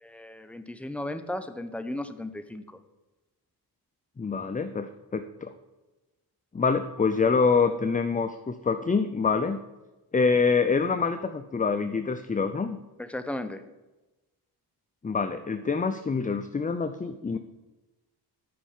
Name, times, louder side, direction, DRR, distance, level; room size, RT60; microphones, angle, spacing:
voice 1, 0.0-2.8 13.0-13.6, left 1 dB, 5° left, 8 dB, 1.0 m, -35 dB
voice 2, 4.2-5.5 6.5-9.6 10.1-12.8 15.0-17.4, left 5 dB, 20° left, 9 dB, 0.6 m, -26 dB
10.5 x 5.6 x 7.4 m, 1.1 s
cardioid pair, 70°, 42 cm